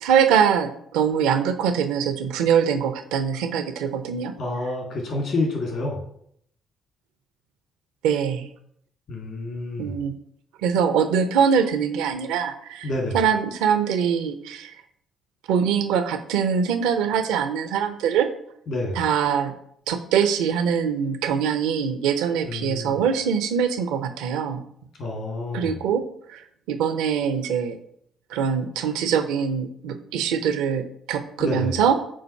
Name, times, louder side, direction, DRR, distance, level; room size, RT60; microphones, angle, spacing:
voice 1, 0.0-4.3 8.0-8.4 9.8-10.1 10.6-12.9 13.1-14.7 15.5-18.3 19.0-19.5 19.9-24.6 25.5-26.0 26.3-26.4 26.7-27.8 28.3-32.0, right 7 dB, 70° right, 9 dB, 0.5 m, -23 dB
voice 2, 4.4-6.0 9.1-10.0 12.8-13.2 18.7-19.1 22.4-23.1 25.0-25.8 31.4-31.7, left 2 dB, 60° left, -1 dB, 2.0 m, -28 dB
7.2 x 2.5 x 5.5 m, 0.69 s
hypercardioid pair, 45°, 0 cm